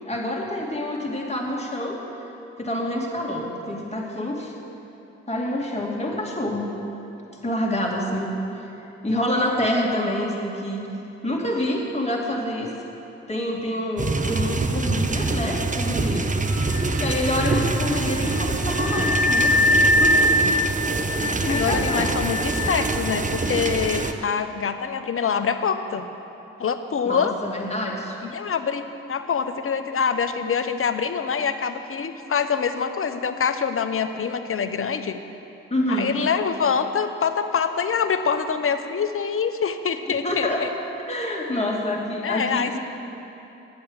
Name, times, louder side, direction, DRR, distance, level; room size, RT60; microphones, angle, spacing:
voice 1, 0.0-2.0 2.6-4.5 5.3-6.7 7.4-8.3 9.0-10.8 11.2-12.7 13.3-16.3 17.0-20.4 21.1-22.2 27.0-28.2 35.7-36.1 40.1-40.6 41.1-42.8, left 1 dB, 20° left, -1 dB, 2.6 m, -27 dB
sound 1, 14.0-24.1, right 3 dB, 25° right, 0.9 m, -25 dB
Wind instrument woodwind instrument, 16.5-23.9, left 1 dB, 85° left, 1.8 m, -24 dB
voice 2, 21.5-26.0 26.6-27.3 28.2-35.2 35.9-40.7 42.2-42.8, left 6 dB, 45° left, 9 dB, 0.9 m, -25 dB
10.5 x 8.6 x 8.0 m, 3.0 s
hypercardioid pair, 45°, 29 cm